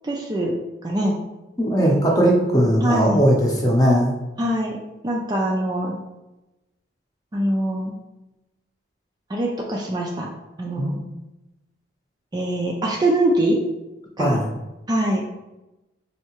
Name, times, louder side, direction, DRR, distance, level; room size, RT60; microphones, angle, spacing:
voice 1, 0.0-0.5 0.8-1.1 2.8-3.2 4.4-4.8 5.0-6.0 7.3-7.9 9.3-10.3 10.6-11.0 12.3-13.6 14.2-14.4 14.9-15.2, right 1 dB, 20° right, -1 dB, 0.3 m, -23 dB
voice 2, 1.6-4.1 10.8-11.0 14.2-14.5, equal, 20° left, -2 dB, 0.7 m, -18 dB
4.3 x 2.7 x 2.9 m, 1.0 s
head